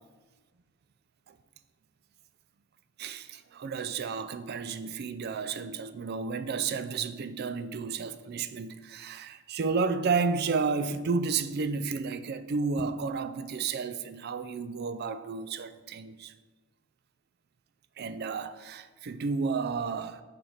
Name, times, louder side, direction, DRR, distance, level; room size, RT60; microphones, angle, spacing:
voice 1, 3.0-16.3 18.0-20.2, right 4 dB, 50° right, 0.4 m, -32 dB
7.0 x 4.1 x 5.0 m
head